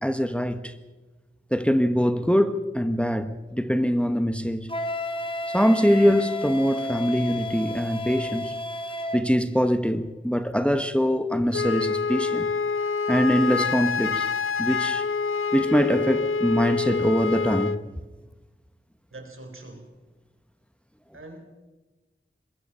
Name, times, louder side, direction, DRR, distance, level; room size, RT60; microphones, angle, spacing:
voice 1, 0.0-0.8 1.5-4.7 5.5-8.6 9.1-12.5 13.1-14.3 14.6-15.0 15.5-17.8, equal, 5° left, 1.1 m, -23 dB
Wind instrument woodwind instrument, 4.7-9.2, left 1 dB, 25° left, 1.7 m, -31 dB
Wind instrument woodwind instrument 2, 11.5-17.8, left 5 dB, 85° left, 0.6 m, -26 dB
voice 2, 19.1-19.9 21.1-21.5, right 2 dB, 80° right, 3.9 m, -43 dB
22.5 x 21.0 x 5.6 m
wide cardioid pair, 55°, 21 cm